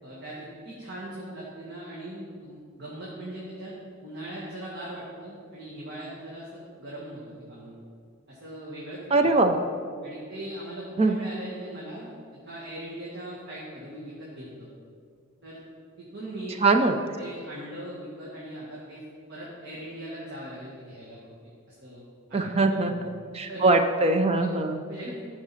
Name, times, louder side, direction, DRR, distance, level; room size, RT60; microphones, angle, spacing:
voice 1, 0.0-3.7 4.0-7.8 8.3-9.3 10.0-14.7 15.4-15.6 16.0-16.6 17.1-19.0 19.3-21.3 21.7-22.0 22.3-23.0 23.5-23.6 24.3-24.5 24.8-25.2, right 1 dB, 50° right, -7 dB, 1.7 m, -40 dB
voice 2, 9.1-9.6 11.0-11.2 16.6-16.9 22.3-22.9 23.3-24.8, right 3 dB, 30° right, 6 dB, 0.4 m, -21 dB
14.0 x 4.9 x 4.1 m, 2.2 s
head